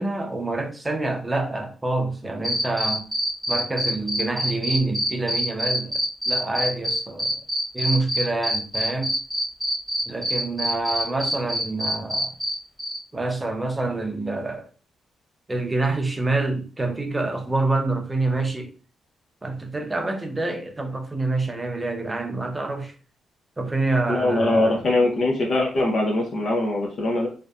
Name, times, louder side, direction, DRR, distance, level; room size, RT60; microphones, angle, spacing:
voice 1, 0.0-3.0 3.5-7.4 7.7-9.1 10.1-12.3 13.1-14.7 15.5-18.7 19.4-22.9 23.6-24.8, right 2 dB, 20° right, 0.5 m, -27 dB
sound 1, 2.4-12.5 12.8-13.0, equal, 5° right, 1.0 m, -25 dB
voice 2, 24.1-27.3, left 2 dB, 55° left, 0.6 m, -22 dB
2.6 x 2.1 x 2.2 m
cardioid pair, 80°, 0 cm